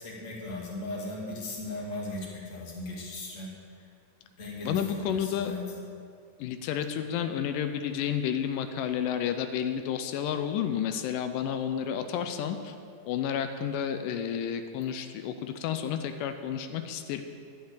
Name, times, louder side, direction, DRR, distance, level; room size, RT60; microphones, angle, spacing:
voice 1, 0.0-3.5 3.8-3.9 4.4-5.8, left 2 dB, 25° left, -4 dB, 2.0 m, -37 dB
voice 2, 4.6-5.6 6.4-12.7 13.1-17.2, left 9 dB, 85° left, 8 dB, 2.2 m, -31 dB
11.5 x 6.4 x 8.3 m, 2.3 s
omnidirectional pair, 3.7 m